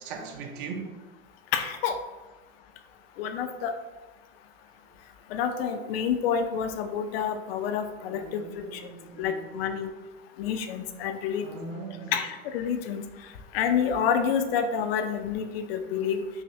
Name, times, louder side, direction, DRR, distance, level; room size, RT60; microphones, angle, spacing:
voice 1, 0.0-0.9 8.1-9.5 11.4-12.1, right 4 dB, 55° right, 0.6 m, -39 dB
voice 2, 1.5-2.0 3.2-3.8 5.3-8.4 8.7-8.9 9.2-9.9 10.4-11.5 12.1-13.1 13.5-16.2, left 7 dB, 70° left, 0.5 m, -28 dB
5.7 x 2.1 x 2.6 m
supercardioid pair, 180°, 30 cm